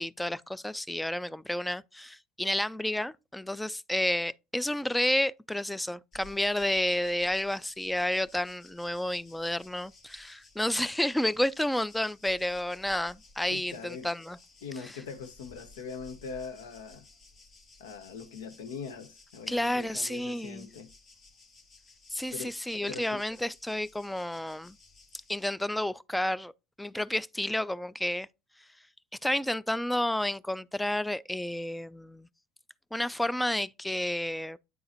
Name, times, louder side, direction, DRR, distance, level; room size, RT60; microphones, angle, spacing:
voice 1, 0.0-14.4 19.5-20.7 22.1-24.7 25.3-26.5 26.8-28.3 29.2-32.3 32.9-34.6, left 1 dB, 5° left, 0.3 m, -31 dB
sound 1, 6.1-25.4, left 3 dB, 45° left, 1.3 m, -57 dB
voice 2, 13.5-14.1 14.6-17.1 17.8-20.9 22.3-22.6 22.9-23.2, left 5 dB, 75° left, 0.8 m, -42 dB
9.1 x 3.9 x 2.9 m
hypercardioid pair, 70°, 0 cm